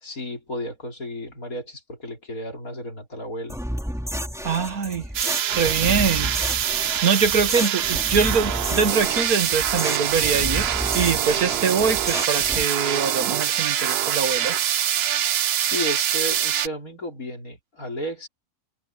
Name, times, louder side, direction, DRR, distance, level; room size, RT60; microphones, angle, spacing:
voice 1, 0.0-3.6 15.6-18.3, left 1 dB, 75° left, 4.7 m, -33 dB
sound 1, 3.5-12.6, equal, ahead, 3.8 m, -31 dB
voice 2, 4.4-5.0 5.5-6.6 7.0-10.7 10.9-14.6, right 5 dB, 85° right, 2.0 m, -23 dB
sound 2, 5.1-16.7, right 10 dB, 60° right, 0.7 m, -24 dB
omnidirectional pair, 1.5 m